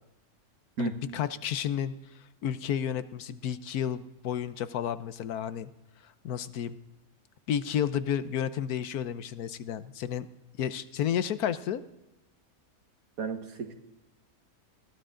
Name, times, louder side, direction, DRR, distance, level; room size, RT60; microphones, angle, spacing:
voice 1, 0.8-2.0 2.4-5.7 6.2-6.8 7.5-10.3 10.6-11.8, left 9 dB, 80° left, 13 dB, 1.3 m, -31 dB
voice 2, 13.2-13.7, right 3 dB, 70° right, 6 dB, 1.9 m, -33 dB
21.0 x 16.0 x 3.8 m, 0.94 s
omnidirectional pair, 1.6 m